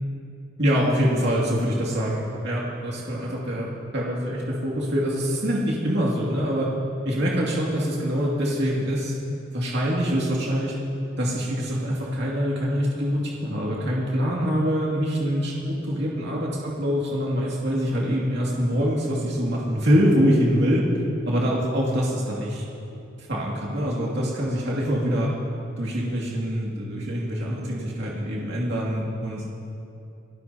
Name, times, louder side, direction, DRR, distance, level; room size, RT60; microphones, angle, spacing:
voice 1, 0.6-6.7 7.0-9.2 9.5-10.7 11.2-20.9 21.3-22.7 23.2-25.3 25.8-29.4, equal, 60° right, -5 dB, 2.4 m, -24 dB
27.5 x 13.0 x 2.9 m, 2.7 s
head